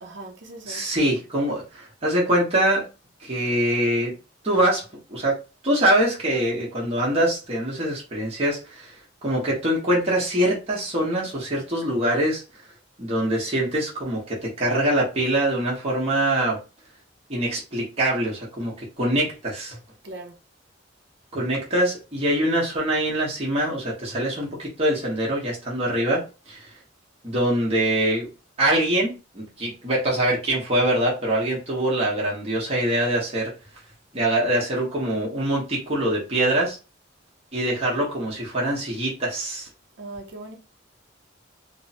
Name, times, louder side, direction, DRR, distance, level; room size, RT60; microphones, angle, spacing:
voice 1, 0.0-0.9 20.0-20.4 40.0-40.6, right 2 dB, 65° right, 0.6 m, -39 dB
voice 2, 0.7-2.9 3.2-4.1 4.4-8.9 9.2-12.4 13.0-16.6 17.3-19.8 21.3-26.7 27.2-28.3 28.6-33.5 34.1-36.8 37.5-39.7, right 1 dB, 35° right, 1.0 m, -24 dB
3.1 x 2.1 x 2.8 m
head